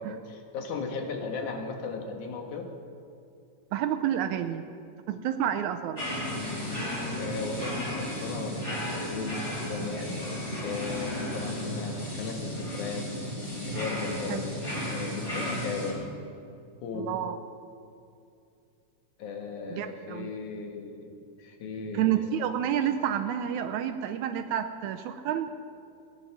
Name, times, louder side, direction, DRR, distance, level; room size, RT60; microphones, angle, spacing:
voice 1, 0.0-2.7 7.2-13.1 13.7-14.6 14.8-16.1 16.8-17.1 19.2-21.1 21.4-22.3, left 4 dB, 80° left, 3 dB, 2.9 m, -36 dB
voice 2, 3.7-4.7 5.1-6.0 14.3-14.4 16.9-17.4 19.7-20.3 21.9-25.5, right 10 dB, 80° right, 7 dB, 1.9 m, -29 dB
sound 1, 6.0-15.9, equal, 20° left, 4.0 m, -34 dB
18.5 x 10.0 x 5.8 m, 2.5 s
omnidirectional pair, 3.5 m